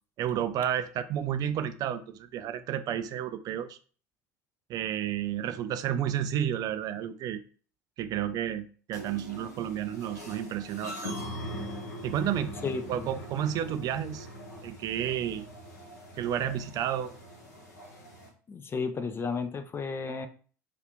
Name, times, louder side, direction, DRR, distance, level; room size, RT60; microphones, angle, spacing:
voice 1, 0.2-3.8 4.7-7.4 8.0-11.2 12.0-12.5 12.9-14.3 14.6-15.5 16.1-17.1, right 10 dB, 45° right, 10 dB, 0.4 m, -31 dB
sound 1, 8.9-18.3, equal, 85° left, 0.9 m, -42 dB
voice 2, 12.6-13.1 18.5-20.3, left 4 dB, 25° left, 10 dB, 0.5 m, -33 dB
2.8 x 2.4 x 3.5 m, 0.41 s
hypercardioid pair, 75°, 9 cm